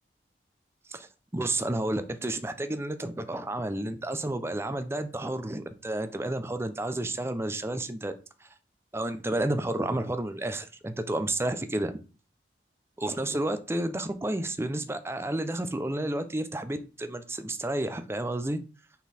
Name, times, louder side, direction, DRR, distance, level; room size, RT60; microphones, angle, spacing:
voice 1, 0.9-8.1 8.4-8.5 8.9-12.0 13.0-18.6, right 1 dB, 15° right, 0.5 m, -31 dB
6.0 x 3.8 x 4.2 m
head